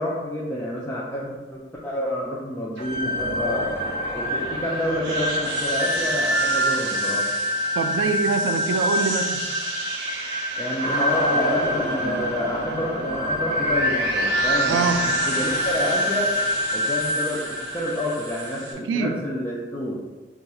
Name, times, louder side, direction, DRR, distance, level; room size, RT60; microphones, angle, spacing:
voice 1, 0.0-3.7 4.1-7.3 10.6-16.3 16.7-20.0, left 1 dB, 10° left, -6 dB, 0.3 m, -29 dB
sound 1, 2.8-18.7, equal, 65° right, 0.7 m, -25 dB
voice 2, 7.8-9.5 14.7-15.1 18.8-19.2, right 5 dB, 85° right, 8 dB, 0.3 m, -24 dB
2.7 x 2.4 x 4.1 m, 1.2 s
head